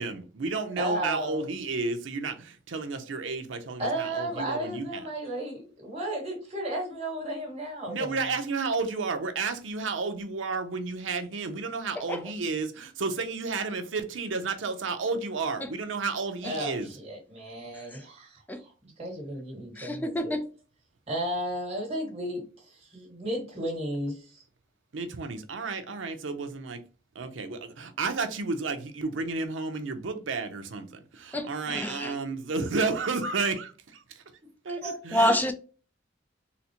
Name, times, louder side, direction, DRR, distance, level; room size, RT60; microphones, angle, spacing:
voice 1, 0.0-5.1 7.9-16.9 24.9-26.8 27.2-34.2 34.6-35.4, right 4 dB, 90° right, 0.6 m, -32 dB
voice 2, 0.8-1.4 3.8-8.2 16.4-18.4 18.8-20.3 21.1-24.3 34.8-35.0, right 1 dB, 35° right, 1.5 m, -33 dB
voice 3, 19.8-20.5 31.3-32.1 35.1-35.5, left 1 dB, 10° left, 0.3 m, -27 dB
4.0 x 2.1 x 2.8 m
head